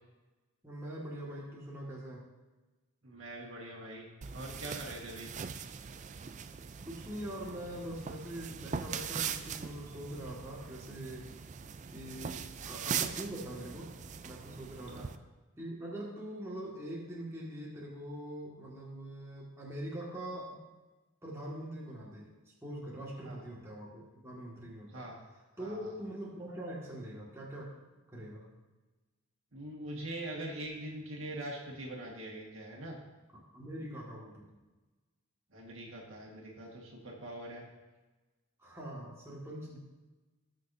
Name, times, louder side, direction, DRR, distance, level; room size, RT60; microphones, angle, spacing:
voice 1, 0.6-2.3 6.8-11.3 11.9-14.0 14.2-15.1 15.6-20.6 21.2-22.3 22.6-25.1 25.6-27.7 28.1-28.6 33.3-34.5 38.6-39.8, right 1 dB, 10° right, -6 dB, 1.9 m, -43 dB
voice 2, 3.0-5.3 14.9-15.1 23.2-23.4 24.9-25.2 25.6-25.9 29.5-33.0 35.5-37.6, right 1 dB, 60° right, -2 dB, 1.8 m, -43 dB
sound 1, 4.2-15.2, right 7 dB, 35° right, 0.3 m, -41 dB
19.0 x 6.4 x 2.7 m, 1.2 s
head